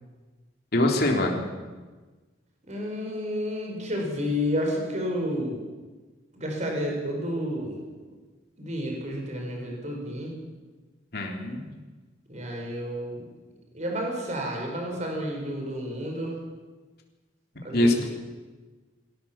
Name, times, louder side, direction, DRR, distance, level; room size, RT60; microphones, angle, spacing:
voice 1, 0.7-1.4 11.1-11.7 17.7-18.1, left 1 dB, 55° left, 1 dB, 3.4 m, -23 dB
voice 2, 2.7-5.6 6.3-7.8 8.6-10.3 12.3-13.2 13.7-16.4 17.6-18.1, equal, 40° right, 1 dB, 5.0 m, -30 dB
23.0 x 17.0 x 7.3 m, 1.3 s
head